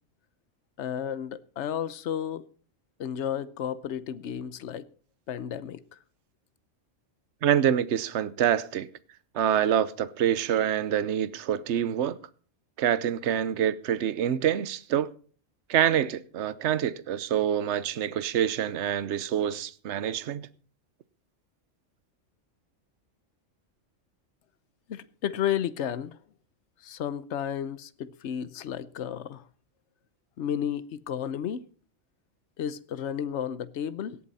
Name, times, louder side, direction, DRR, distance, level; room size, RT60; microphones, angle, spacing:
voice 1, 0.8-2.5 3.0-4.9 5.3-5.8 24.9-26.2 26.8-29.4 30.4-31.6 32.6-34.2, left 9 dB, 65° left, 1.1 m, -32 dB
voice 2, 7.4-8.9 9.3-12.2 12.8-15.1 15.7-20.5, right 10 dB, 65° right, 1.0 m, -26 dB
17.5 x 11.5 x 4.1 m
omnidirectional pair, 1.3 m